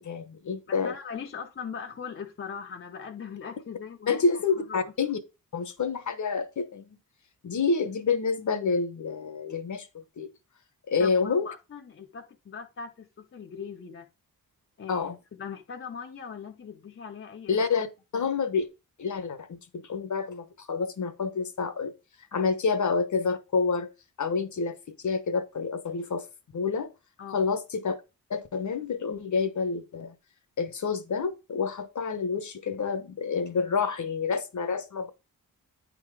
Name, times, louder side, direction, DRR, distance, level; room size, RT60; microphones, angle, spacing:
voice 1, 0.0-0.9 4.1-5.2 5.5-7.0 7.4-10.3 10.9-11.5 14.9-15.2 17.5-17.9 18.1-18.7 19.0-21.9 22.3-23.9 24.2-26.2 26.5-26.9 27.3-28.0 28.3-30.1 30.6-35.1, left 5 dB, 55° left, 1.0 m, -28 dB
voice 2, 0.7-4.3 4.6-4.9 11.0-14.1 14.8-15.1 15.4-17.6 22.3-22.5 27.2-27.4, left 6 dB, 35° left, 0.7 m, -40 dB
9.6 x 3.9 x 4.7 m
wide cardioid pair, 170°, 36 cm